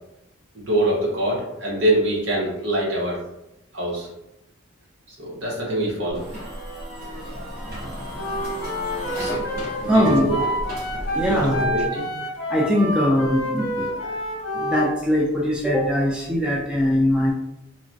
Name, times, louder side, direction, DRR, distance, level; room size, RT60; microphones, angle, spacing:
voice 1, 0.5-3.2 3.7-4.1 5.2-6.3 9.2-9.5 9.8-10.4 11.1-12.1, right 1 dB, 75° right, -5 dB, 1.1 m, -24 dB
sound 1, 6.1-11.9, equal, 50° right, 1.1 m, -34 dB
Wind instrument woodwind instrument, 8.1-14.9, equal, 75° left, 0.8 m, -28 dB
voice 2, 9.9-10.5 11.1-11.7 12.5-14.2 14.5-17.3, equal, 5° right, -4 dB, 0.3 m, -21 dB
2.9 x 2.2 x 2.6 m, 0.86 s
head